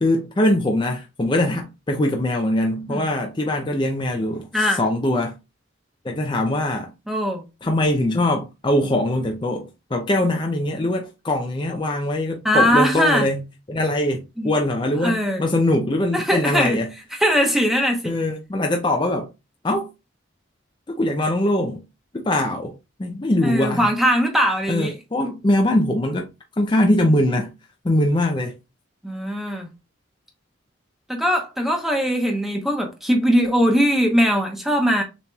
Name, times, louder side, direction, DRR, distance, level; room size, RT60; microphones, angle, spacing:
voice 1, 0.0-5.4 6.0-6.9 7.6-13.4 13.7-16.9 18.0-19.3 19.6-19.9 20.9-21.8 22.1-22.7 23.0-23.9 24.7-26.3 26.5-27.5 27.8-28.5, left 1 dB, 25° left, 0.5 m, -22 dB
voice 2, 7.1-7.4 12.4-13.3 14.4-14.5 15.0-15.4 16.1-16.8 17.2-18.1 23.4-24.9 29.0-29.7 31.1-35.0, equal, ahead, 0.9 m, -20 dB
6.7 x 3.0 x 2.3 m
head